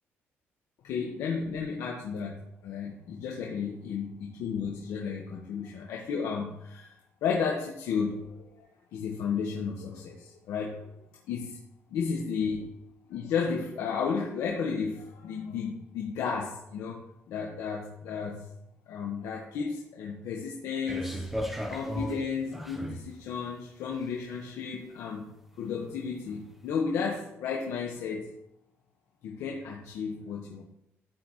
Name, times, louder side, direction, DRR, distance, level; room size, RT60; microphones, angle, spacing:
voice 1, 0.8-2.3 2.6-6.9 7.2-8.4 8.9-11.0 11.3-11.6 11.9-12.6 13.1-17.0 17.3-18.5 18.9-21.2 21.7-25.3 25.6-28.3 29.2-30.6, left 6 dB, 90° left, -2 dB, 1.5 m, -33 dB
sound 1, 20.9-23.1 23.9-24.0, equal, 5° right, 0.9 m, -35 dB
13.0 x 7.8 x 3.2 m, 0.82 s
cardioid pair, 170°, 5 cm